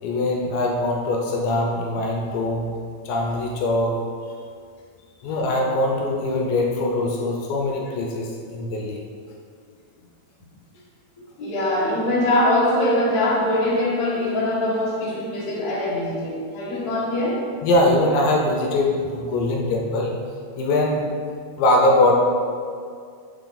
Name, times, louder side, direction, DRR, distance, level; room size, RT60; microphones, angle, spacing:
voice 1, 0.0-2.7 3.1-4.0 5.2-9.0 17.6-20.2 20.6-21.1 21.6-22.1, left 1 dB, 80° left, 0 dB, 2.2 m, -22 dB
voice 2, 11.4-17.4, left 1 dB, 55° left, -8 dB, 1.0 m, -22 dB
6.6 x 4.7 x 3.9 m, 2.2 s
omnidirectional pair, 4.3 m